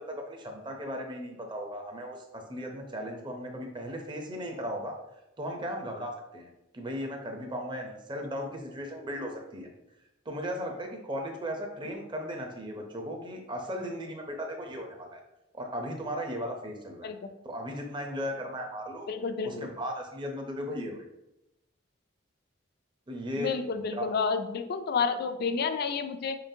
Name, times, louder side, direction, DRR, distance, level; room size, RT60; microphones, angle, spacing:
voice 1, 0.1-4.9 5.4-6.5 6.7-9.7 10.3-15.2 15.5-17.1 17.4-19.1 19.4-21.0 23.1-24.0, equal, 25° right, 2 dB, 0.6 m, -36 dB
voice 2, 19.1-19.7 23.4-26.4, left 5 dB, 55° left, 9 dB, 0.4 m, -30 dB
4.9 x 3.8 x 2.7 m, 0.91 s
head